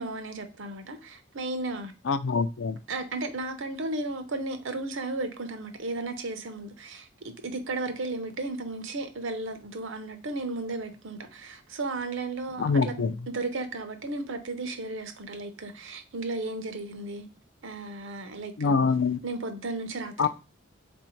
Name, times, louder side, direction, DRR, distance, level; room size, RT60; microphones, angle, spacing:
voice 1, 0.0-1.9 2.9-17.3 17.6-18.8 19.2-20.3, right 2 dB, 70° right, 0.7 m, -34 dB
voice 2, 2.1-2.8 12.6-13.1 18.6-19.2 20.2-20.3, left 4 dB, 65° left, 0.4 m, -24 dB
3.9 x 2.6 x 4.4 m
head